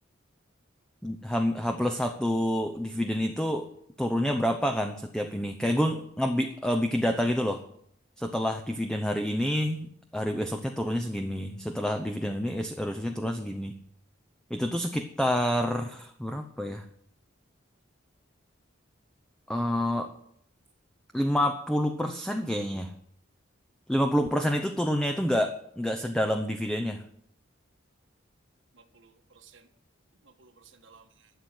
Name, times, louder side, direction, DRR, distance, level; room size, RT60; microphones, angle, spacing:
voice 1, 1.0-3.7 4.0-7.6 8.2-13.7 14.5-16.8 19.5-20.1 21.1-22.9 23.9-27.0, equal, 5° left, 5 dB, 0.7 m, -28 dB
voice 2, 28.7-29.7 30.2-31.3, right 5 dB, 70° right, 7 dB, 1.5 m, -57 dB
13.0 x 8.0 x 8.1 m, 0.69 s
head